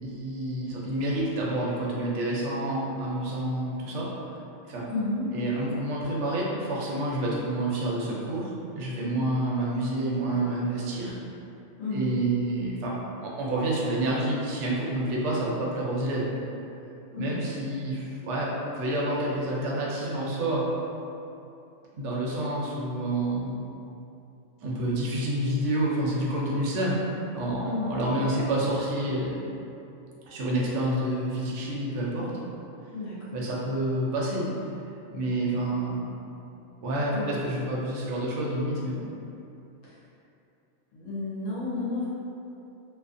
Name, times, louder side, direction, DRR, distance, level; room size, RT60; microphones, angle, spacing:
voice 1, 0.0-4.8 5.3-11.2 11.9-12.9 13.2-16.3 17.2-20.7 21.9-23.6 24.6-27.0 27.3-29.4 30.3-32.3 33.3-34.4 35.1-36.1 36.8-39.1, right 1 dB, 70° right, -4 dB, 0.8 m, -28 dB
voice 2, 4.9-5.2 11.8-12.1 17.1-17.6 27.6-28.3 32.9-33.4 37.1-37.4 40.9-42.1, left 2 dB, 70° left, -9 dB, 1.0 m, -32 dB
2.4 x 2.4 x 2.5 m, 2.7 s
omnidirectional pair, 1.4 m